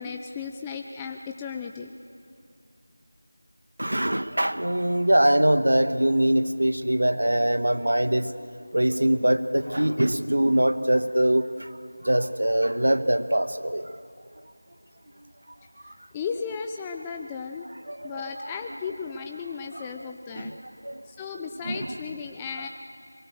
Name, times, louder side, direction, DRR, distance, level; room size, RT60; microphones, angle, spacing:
voice 1, 0.0-1.9 16.1-17.7 18.0-20.5 21.1-22.7, left 6 dB, 10° left, 3 dB, 0.5 m, -35 dB
voice 2, 3.8-8.3 8.7-14.0 15.8-15.9 17.9-18.8 19.7-19.9 20.3-21.0 21.6-22.0, right 1 dB, 75° right, 10 dB, 1.3 m, -23 dB
23.0 x 22.0 x 6.7 m, 2.3 s
figure-of-eight pair, 170°, 0 cm